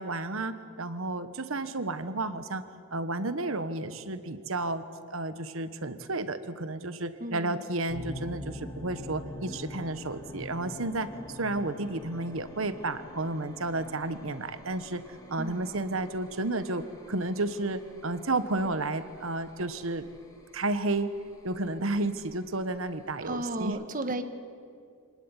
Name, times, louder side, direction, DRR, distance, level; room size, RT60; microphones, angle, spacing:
voice 1, 0.0-2.6 2.9-15.0 15.3-20.1 20.5-21.1 21.4-23.8, right 2 dB, 65° right, 12 dB, 1.3 m, -32 dB
voice 2, 7.2-7.6 15.4-15.6 23.2-24.2, right 1 dB, 40° right, 9 dB, 1.5 m, -34 dB
sound 1, 7.9-23.6, left 1 dB, 15° left, 3.0 m, -46 dB
25.5 x 19.0 x 9.9 m, 2.3 s
head